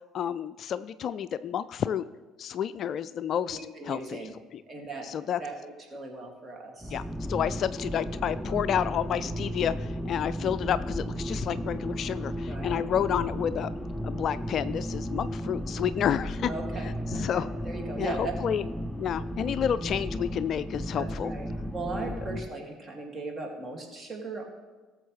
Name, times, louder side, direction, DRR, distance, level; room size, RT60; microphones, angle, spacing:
voice 1, 0.1-2.0 2.4-3.6 3.9-4.2 5.0-5.4 6.9-7.0 7.3-13.7 14.0-16.5 17.1-17.5 18.0-18.6 19.0-21.3, left 9 dB, 50° left, 15 dB, 0.3 m, -30 dB
voice 2, 3.5-4.3 4.7-5.1 5.4-7.0 8.5-8.6 12.5-12.8 16.5-18.3 20.9-24.5, right 3 dB, 30° right, 2 dB, 2.4 m, -38 dB
sound 1, 6.8-22.5, equal, ahead, 0.7 m, -34 dB
18.5 x 7.1 x 3.3 m, 1.3 s
figure-of-eight pair, 55°, 0 cm